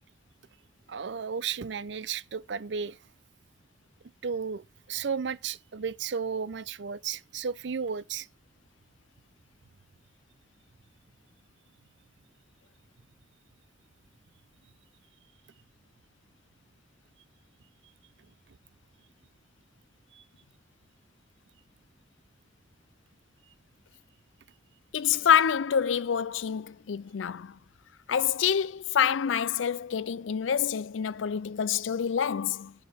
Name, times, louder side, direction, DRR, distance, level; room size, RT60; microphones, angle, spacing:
voice 1, 0.9-3.0 4.2-8.3 20.1-20.2, right 6 dB, 65° right, 0.6 m, -33 dB
voice 2, 24.9-27.5 28.1-32.7, left 8 dB, 85° left, 0.4 m, -27 dB
8.9 x 8.0 x 6.2 m
head